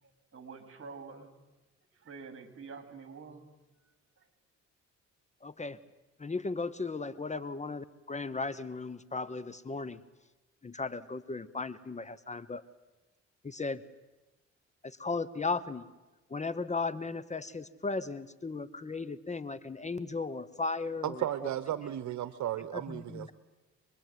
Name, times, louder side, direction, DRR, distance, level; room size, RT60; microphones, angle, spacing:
voice 1, 0.0-1.3 1.9-3.4 4.2-4.3, right 4 dB, 45° right, 4.5 m, -47 dB
voice 2, 5.4-5.8 6.2-10.0 10.6-12.6 13.4-13.8 14.8-15.9 16.3-21.2 22.7-23.3, left 3 dB, 25° left, 1.1 m, -36 dB
voice 3, 21.0-23.3, right 11 dB, 70° right, 1.2 m, -34 dB
27.0 x 21.5 x 9.5 m
cardioid pair, 90°, 30 cm